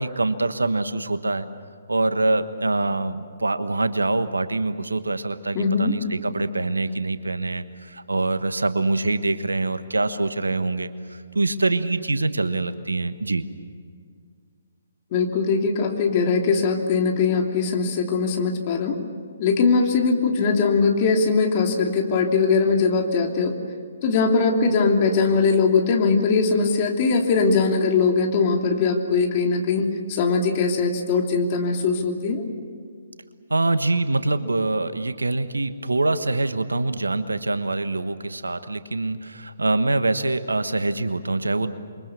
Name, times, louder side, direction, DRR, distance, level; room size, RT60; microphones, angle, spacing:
voice 1, 0.0-1.5 1.9-13.4 33.5-41.7, right 2 dB, 80° right, 11 dB, 1.4 m, -24 dB
voice 2, 5.5-6.0 6.3-6.4 15.1-19.0 19.4-23.5 24.0-32.4, left 4 dB, 35° left, 2 dB, 3.1 m, -21 dB
28.0 x 24.0 x 7.0 m, 2.1 s
figure-of-eight pair, 135°, 0 cm